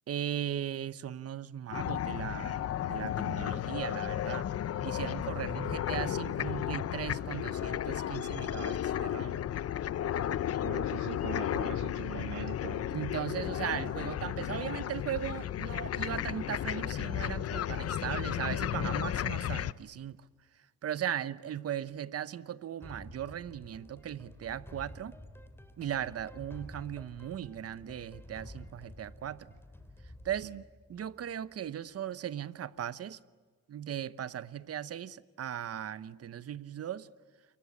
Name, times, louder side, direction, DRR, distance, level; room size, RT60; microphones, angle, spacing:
voice 1, 0.1-4.5 4.8-9.5 12.9-20.2 20.8-25.1 25.8-29.5 30.2-30.5 30.9-33.2 33.7-37.1, right 10 dB, 50° right, 1.0 m, -38 dB
sound 1, 1.7-19.7, left 11 dB, 55° left, 0.8 m, -34 dB
voice 2, 10.6-12.9 30.4-30.6, right 15 dB, 90° right, 0.7 m, -42 dB
sound 2, 22.8-31.7, left 1 dB, 10° left, 3.3 m, -51 dB
29.0 x 23.0 x 8.6 m
cardioid pair, 90°, 30 cm